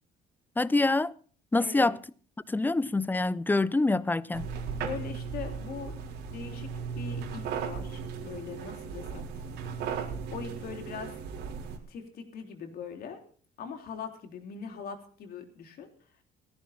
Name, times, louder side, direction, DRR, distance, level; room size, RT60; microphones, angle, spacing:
voice 1, 0.6-1.1 1.5-2.0 2.5-4.5, left 2 dB, 10° left, 0.6 m, -26 dB
voice 2, 1.6-1.9 4.8-6.0 6.3-6.7 7.0-9.3 10.3-11.1 11.9-13.2 13.6-15.9, left 6 dB, 65° left, 3.6 m, -41 dB
sound 1, 4.3-11.8, right 6 dB, 85° right, 4.1 m, -36 dB
18.0 x 14.0 x 4.3 m
cardioid pair, 110°, 17 cm